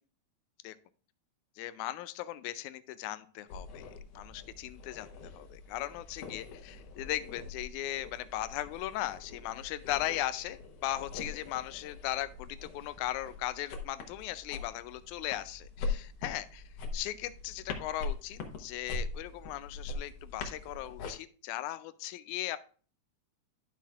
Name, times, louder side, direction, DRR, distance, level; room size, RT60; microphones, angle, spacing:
voice 1, 1.6-5.1 5.4-16.6 16.9-22.6, left 14 dB, 90° left, 13 dB, 2.0 m, -38 dB
sound 1, 3.5-21.1, left 3 dB, 65° left, 2.0 m, -42 dB
12.0 x 5.7 x 2.4 m, 0.39 s
omnidirectional pair, 3.4 m